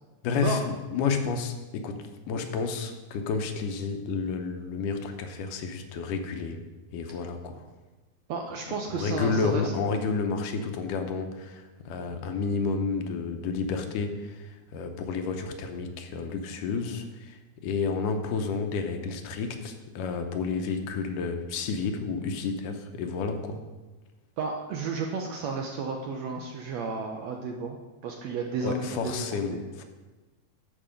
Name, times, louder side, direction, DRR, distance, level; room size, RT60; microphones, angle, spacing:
voice 1, 0.2-6.6 6.9-7.6 9.0-23.6 28.6-29.8, left 5 dB, 80° left, 6 dB, 2.4 m, -31 dB
voice 2, 8.3-9.7 24.4-27.8 28.0-29.1 29.5-29.6, right 4 dB, 75° right, 2 dB, 1.6 m, -32 dB
12.5 x 5.3 x 5.1 m, 1.2 s
omnidirectional pair, 3.8 m